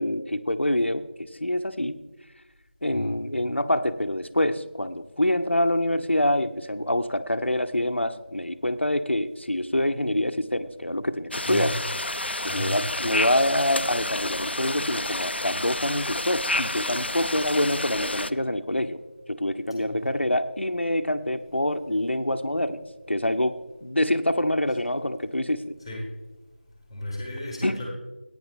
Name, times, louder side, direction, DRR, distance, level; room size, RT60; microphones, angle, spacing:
voice 1, 0.0-2.0 2.8-11.7 12.4-19.0 19.3-23.5 23.8-25.6 27.6-27.8, left 1 dB, 90° left, 8 dB, 0.8 m, -26 dB
sound 1, 11.3-18.3, left 2 dB, 70° left, 0.5 m, -30 dB
voice 2, 26.9-27.9, left 1 dB, ahead, -2 dB, 1.3 m, -34 dB
15.5 x 9.3 x 3.7 m, 1.1 s
figure-of-eight pair, 170°, 6 cm